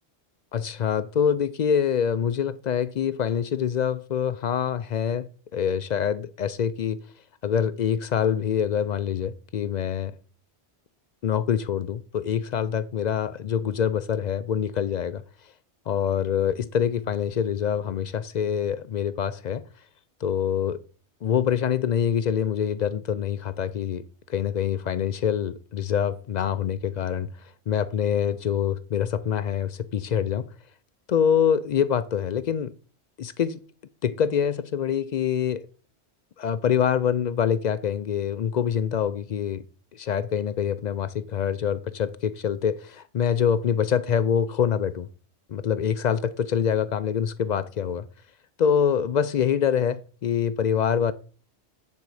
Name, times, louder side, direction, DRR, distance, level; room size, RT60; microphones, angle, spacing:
voice 1, 0.5-7.0 7.4-10.2 11.2-15.2 15.9-19.6 20.2-20.8 21.2-27.3 27.7-30.5 31.1-32.7 33.2-33.6 34.0-35.7 36.4-39.6 39.9-45.1 45.5-48.1 48.6-51.1, left 8 dB, 60° left, 0.5 m, -25 dB
9.7 x 3.9 x 4.8 m
omnidirectional pair, 1.1 m